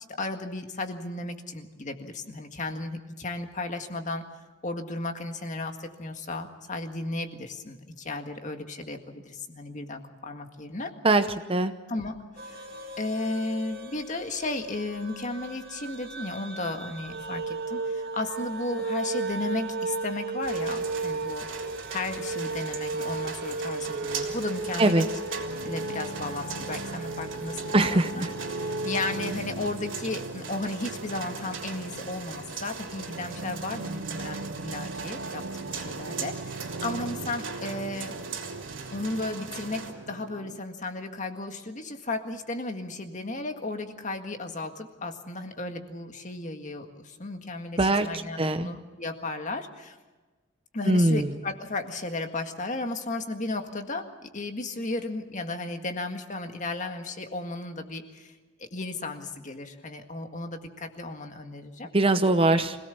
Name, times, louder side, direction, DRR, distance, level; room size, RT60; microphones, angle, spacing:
voice 1, 0.2-4.2 4.6-10.9 11.9-21.5 21.9-25.0 25.6-28.2 28.5-38.2 38.9-50.0 50.7-58.3 58.6-61.9 62.5-62.6, left 2 dB, 40° left, 5 dB, 1.8 m, -34 dB
voice 2, 11.0-11.7 24.8-25.1 27.7-28.3 47.8-48.7 50.8-51.3 61.9-62.8, right 2 dB, 25° right, 10 dB, 0.8 m, -22 dB
sound 1, 12.4-29.3, right 3 dB, 50° right, 2.5 m, -35 dB
sound 2, 20.4-39.9, right 5 dB, 70° right, 3.3 m, -40 dB
sound 3, 25.4-40.6, right 3 dB, 90° right, 0.8 m, -40 dB
25.5 x 17.5 x 7.1 m, 1.2 s
head